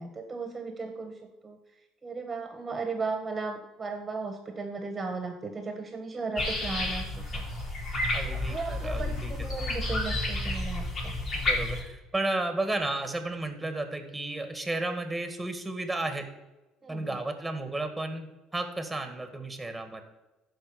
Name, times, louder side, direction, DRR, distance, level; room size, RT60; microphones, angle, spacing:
voice 1, 0.0-1.6 2.0-7.1 7.3-7.4 8.2-11.1 16.8-17.2, right 4 dB, 30° right, 5 dB, 1.5 m, -36 dB
sound 1, 6.4-11.8, left 1 dB, 50° left, 3.8 m, -31 dB
voice 2, 8.1-9.3 11.3-16.3 16.9-20.0, right 2 dB, 10° right, 7 dB, 2.0 m, -33 dB
11.5 x 5.1 x 7.0 m, 1.1 s
hypercardioid pair, 70°, 0 cm